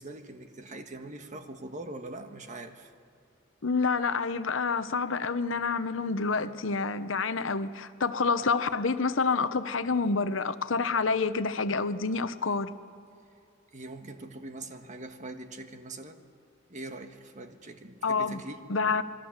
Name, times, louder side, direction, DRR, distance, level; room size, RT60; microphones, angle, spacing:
voice 1, 0.0-2.9 13.7-16.2 16.7-18.6, right 2 dB, 40° right, 6 dB, 1.6 m, -42 dB
voice 2, 3.6-12.7 18.0-18.4 18.7-19.0, left 4 dB, 75° left, 12 dB, 0.9 m, -28 dB
27.0 x 20.5 x 7.3 m, 2.6 s
head